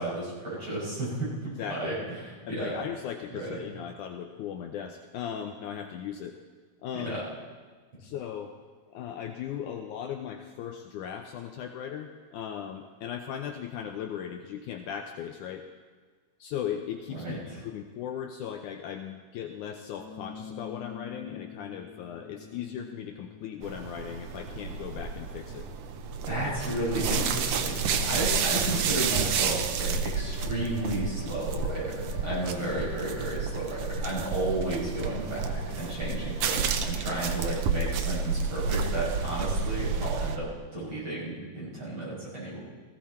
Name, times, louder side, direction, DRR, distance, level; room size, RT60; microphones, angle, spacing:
voice 1, 0.0-2.0 2.2-2.8 3.3-3.6 7.0-7.3 17.1-17.4 26.3-42.6, right 2 dB, 35° right, -7 dB, 6.5 m, -33 dB
voice 2, 1.6-2.0 2.4-6.4 6.8-7.2 8.0-8.5 8.9-15.7 16.4-17.4 17.6-25.7 26.4-26.5 28.2-28.3, left 9 dB, 75° left, 4 dB, 1.9 m, -37 dB
sound 1, 19.9-30.0, left 6 dB, 45° left, 4.3 m, -49 dB
sound 2, 23.6-40.4, right 5 dB, 85° right, 1.4 m, -30 dB
sound 3, 26.2-36.5, right 2 dB, 70° right, 6.9 m, -44 dB
18.5 x 15.0 x 4.3 m, 1.5 s
omnidirectional pair, 3.9 m